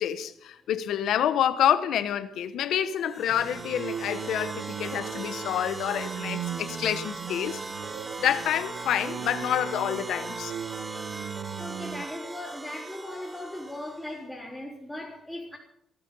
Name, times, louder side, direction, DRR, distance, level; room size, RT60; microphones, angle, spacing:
voice 1, 0.0-7.6 8.2-10.5, left 10 dB, 75° left, 1.1 m, -28 dB
sound 1, 2.9-14.2, right 3 dB, 25° right, 0.9 m, -39 dB
sound 2, 3.3-12.0, right 9 dB, 75° right, 1.0 m, -38 dB
voice 2, 11.1-15.6, left 1 dB, ahead, 4.5 m, -39 dB
18.5 x 13.0 x 5.5 m
cardioid pair, 90°, 0 cm